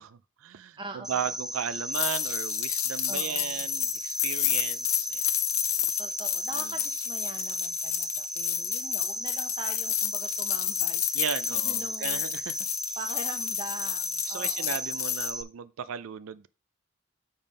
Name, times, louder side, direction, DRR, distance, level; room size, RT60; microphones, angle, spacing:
voice 1, 0.0-5.3 6.5-6.7 11.1-12.6 12.8-13.0 14.3-16.5, right 8 dB, 90° right, 0.4 m, -36 dB
voice 2, 0.8-1.3 3.1-3.6 6.0-11.2 11.5-12.2 13.0-15.1, right 2 dB, 25° right, 0.8 m, -43 dB
Cricket, 1.0-15.4, right 1 dB, ahead, 0.3 m, -35 dB
sound 1, 1.9-15.3, left 14 dB, 85° left, 0.5 m, -31 dB
7.2 x 3.5 x 5.3 m
head